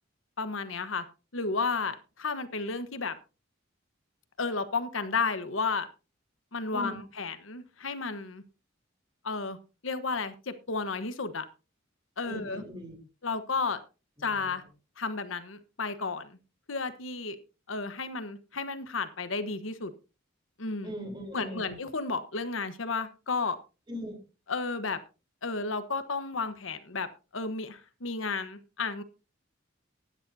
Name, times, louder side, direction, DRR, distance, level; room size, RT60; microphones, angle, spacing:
voice 1, 0.4-1.0 1.3-3.1 4.4-5.9 6.5-8.4 9.2-9.6 9.8-11.4 12.2-12.6 13.2-13.8 14.2-14.6 15.0-16.3 16.7-17.4 17.7-19.9 20.6-20.9 21.3-23.6 24.5-25.0 25.4-27.1 27.3-29.0, left 4 dB, 80° left, 11 dB, 1.2 m, -32 dB
voice 2, 12.2-13.0 14.2-14.7 20.8-21.8 23.9-24.3, left 1 dB, 25° right, 3 dB, 3.9 m, -40 dB
16.5 x 11.0 x 2.7 m, 0.31 s
head